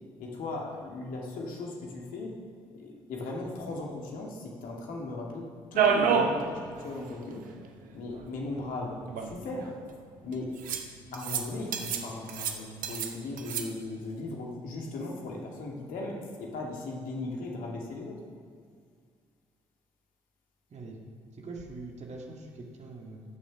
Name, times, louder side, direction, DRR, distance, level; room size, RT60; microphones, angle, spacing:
voice 1, 0.2-2.3 2.7-5.4 5.7-7.4 7.9-9.7 10.2-10.5 11.1-18.2, left 2 dB, 60° left, -1 dB, 2.3 m, -37 dB
sound 1, 5.8-6.4 6.8-6.9 7.1-7.2 8.2-8.3 9.1-9.7 10.6-10.9 11.1-11.4 11.7-12.0 12.3-13.1 13.4-13.6, right 6 dB, 60° right, 1.0 m, -27 dB
voice 2, 21.4-23.2, right 3 dB, 45° right, 0 dB, 2.1 m, -43 dB
16.0 x 7.2 x 6.0 m, 2.1 s
figure-of-eight pair, 45°, 16 cm